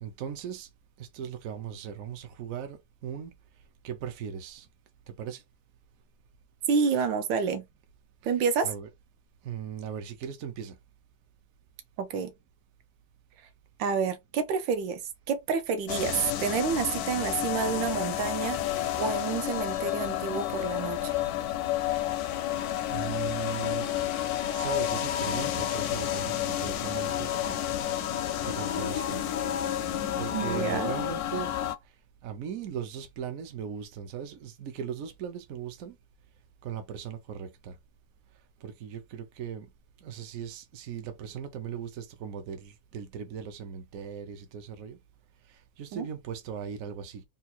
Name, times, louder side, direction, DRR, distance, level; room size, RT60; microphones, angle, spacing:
voice 1, 0.0-0.7 1.0-3.3 3.8-4.7 5.1-5.4 8.2-8.9 9.4-10.8 22.5-23.9 24.5-27.3 28.4-29.2 30.2-31.6 32.2-36.0 36.6-37.7 38.6-39.7 40.0-45.0 45.5-47.2, right 8 dB, 65° right, 0.9 m, -38 dB
voice 2, 6.7-7.7 8.2-8.7 12.0-12.3 13.8-15.0 15.3-18.6 19.0-21.1 30.3-30.9 45.9-46.1, right 6 dB, 80° right, 1.4 m, -29 dB
sound 1, 15.9-31.7, left 11 dB, 75° left, 0.9 m, -30 dB
3.6 x 2.3 x 4.2 m
omnidirectional pair, 2.0 m